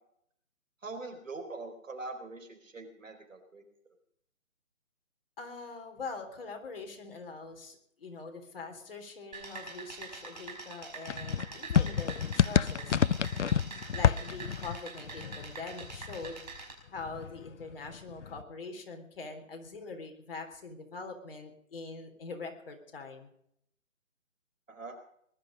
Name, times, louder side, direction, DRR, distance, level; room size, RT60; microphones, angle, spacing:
voice 1, 0.8-3.6 24.7-25.0, right 3 dB, 65° right, 8 dB, 4.4 m, -43 dB
voice 2, 5.4-13.0 13.9-16.4 16.9-23.3, left 4 dB, 40° left, 4 dB, 3.7 m, -43 dB
sound 1, 9.3-16.7, right 4 dB, 30° right, 5.2 m, -45 dB
sound 2, 11.1-16.6 16.9-18.4, left 8 dB, 60° left, 0.6 m, -29 dB
20.5 x 12.5 x 5.2 m, 0.70 s
hypercardioid pair, 165°, 41 cm